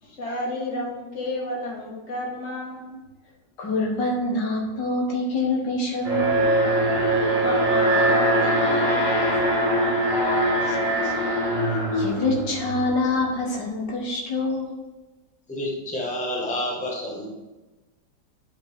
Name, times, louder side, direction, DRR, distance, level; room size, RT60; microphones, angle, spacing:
voice 1, 0.0-3.0 7.2-10.0, left 1 dB, 40° left, -1 dB, 1.8 m, -33 dB
voice 2, 3.6-6.4 10.7-11.1 11.7-14.7, left 2 dB, 75° left, -1 dB, 2.1 m, -26 dB
Alarm, 6.0-13.1, right 1 dB, 15° right, 1.9 m, -22 dB
voice 3, 15.5-17.4, left 1 dB, 5° left, -3 dB, 1.2 m, -29 dB
10.5 x 5.1 x 3.6 m, 1.1 s
omnidirectional pair, 2.0 m